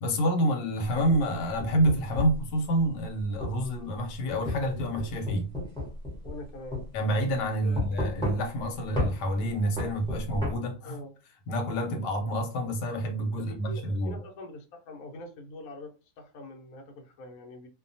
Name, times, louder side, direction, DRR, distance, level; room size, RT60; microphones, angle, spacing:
voice 1, 0.0-5.5 6.9-11.0 11.5-14.2, right 1 dB, 90° left, 1.2 m, -28 dB
sound 1, 0.9-2.4 3.4-3.6 4.5-6.4 6.7-6.9 7.8-8.6 9.0-9.1 9.8-10.5, left 1 dB, 5° left, 0.3 m, -32 dB
voice 2, 6.2-6.8 7.6-8.0 10.8-11.1 13.3-17.7, left 2 dB, 70° left, 1.1 m, -44 dB
2.7 x 2.2 x 2.5 m
omnidirectional pair, 1.8 m